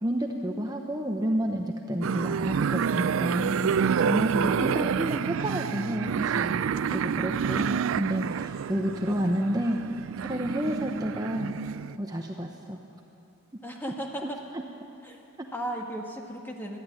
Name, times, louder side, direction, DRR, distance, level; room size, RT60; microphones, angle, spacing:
voice 1, 0.0-6.6 6.9-9.8 10.2-11.5 12.0-12.8 14.2-14.6 15.4-15.5, right 1 dB, 20° right, 2 dB, 0.9 m, -30 dB
sound 1, 2.0-12.0, right 7 dB, 70° right, 0.4 m, -28 dB
voice 2, 10.6-11.1 13.6-14.4 15.0-15.2 15.5-16.8, right 1 dB, 10° left, 1 dB, 1.4 m, -37 dB
20.5 x 13.0 x 9.8 m, 2.7 s
head